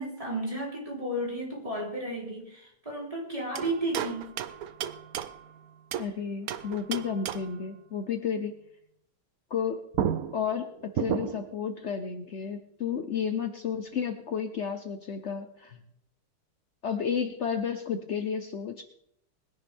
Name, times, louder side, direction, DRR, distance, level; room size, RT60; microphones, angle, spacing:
voice 1, 0.0-4.3, right 1 dB, 15° right, -3 dB, 3.8 m, -33 dB
sound 1, 3.5-6.1 6.5-7.6 9.6-9.7 9.9-11.6, right 9 dB, 80° right, 0.8 m, -33 dB
voice 2, 6.0-8.6 9.5-9.9 10.3-15.7 16.8-18.8, left 7 dB, 70° left, 7 dB, 0.6 m, -32 dB
21.0 x 10.5 x 3.5 m, 0.72 s
omnidirectional pair, 2.4 m